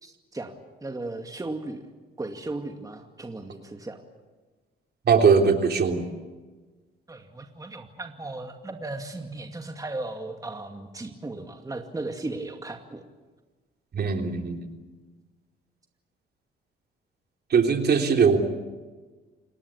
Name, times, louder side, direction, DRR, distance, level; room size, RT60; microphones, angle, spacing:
voice 1, 0.0-0.6 0.8-1.8 2.2-4.0 7.1-13.0, right 2 dB, 15° right, 4 dB, 2.3 m, -36 dB
voice 2, 5.0-6.1 13.9-14.7 17.5-18.4, right 5 dB, 55° right, 4 dB, 3.4 m, -20 dB
29.5 x 19.0 x 8.6 m, 1.3 s
cardioid pair, 90°, 20 cm